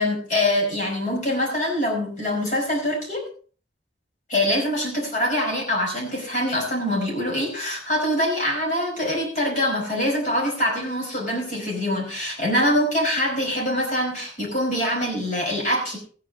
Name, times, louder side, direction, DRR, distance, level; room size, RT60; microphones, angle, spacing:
voice 1, 0.0-3.2 4.3-16.0, left 1 dB, 45° left, 0 dB, 4.9 m, -24 dB
15.5 x 9.8 x 3.7 m, 0.41 s
head